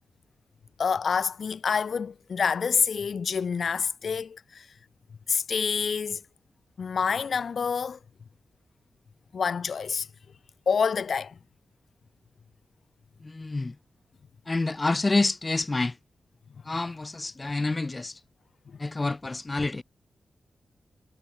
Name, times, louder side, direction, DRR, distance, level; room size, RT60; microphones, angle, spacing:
voice 1, 0.8-4.7 5.3-6.2 6.8-8.0 9.3-10.1 10.6-11.4 18.7-18.8, left 6 dB, 70° left, 1.7 m, -27 dB
voice 2, 13.2-13.7 14.5-16.0 16.6-18.2 18.8-19.8, left 3 dB, 35° left, 0.9 m, -28 dB
cardioid pair, 60°, 0 cm